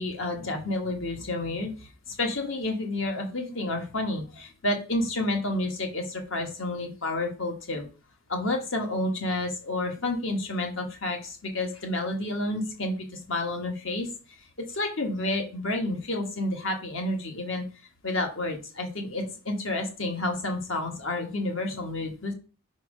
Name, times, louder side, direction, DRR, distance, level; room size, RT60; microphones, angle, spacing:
voice 1, 0.0-7.9 8.3-12.9 13.3-14.1 14.7-17.7 18.0-22.3, left 2 dB, 60° left, 3 dB, 1.5 m, -30 dB
5.3 x 4.6 x 4.9 m, 0.35 s
head